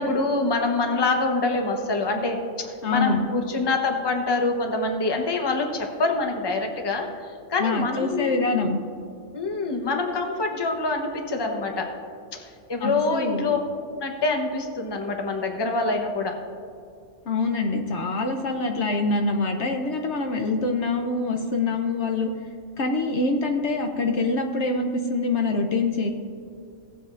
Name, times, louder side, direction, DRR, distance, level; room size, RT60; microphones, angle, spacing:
voice 1, 0.0-8.5 9.3-11.9 12.3-13.6 14.0-16.4, left 3 dB, 20° left, 3 dB, 0.8 m, -25 dB
voice 2, 2.8-3.3 7.6-8.8 12.8-13.5 17.3-22.3 22.8-26.1, left 3 dB, 60° left, 3 dB, 1.0 m, -25 dB
17.5 x 8.1 x 2.5 m, 2.5 s
omnidirectional pair, 1.4 m